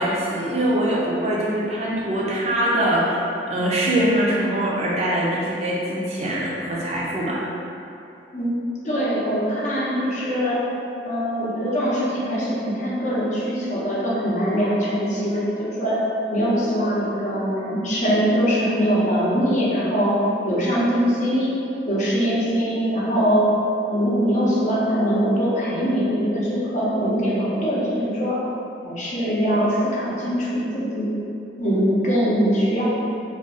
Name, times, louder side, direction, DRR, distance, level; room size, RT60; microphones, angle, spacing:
voice 1, 0.0-7.4, right 1 dB, 35° right, -5 dB, 0.4 m, -23 dB
voice 2, 8.8-10.6 11.0-16.0 16.3-20.1 20.4-21.6 21.9-23.5 23.9-28.4 28.8-31.1 31.6-32.8, equal, 45° left, -7 dB, 0.6 m, -22 dB
2.6 x 2.3 x 3.6 m, 2.7 s
head